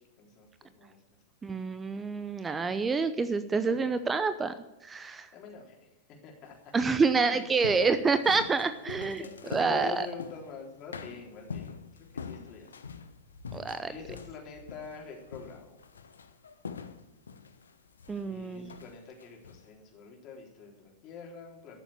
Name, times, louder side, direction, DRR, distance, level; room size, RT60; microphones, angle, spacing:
voice 1, 0.2-1.0 3.6-3.9 5.3-5.9 6.2-6.6 7.1-7.5 8.8-12.7 13.9-15.7 18.2-21.8, left 5 dB, 40° left, 0 dB, 3.8 m, -45 dB
voice 2, 1.4-4.5 4.8-5.3 6.7-9.2 9.5-10.1 13.5-13.9 18.1-18.7, right 4 dB, 15° right, 12 dB, 0.7 m, -27 dB
sound 1, 6.4-10.6 10.9-19.7, left 5 dB, 75° left, 0.9 m, -44 dB
13.5 x 7.1 x 8.5 m, 1.0 s
figure-of-eight pair, 95°, 0 cm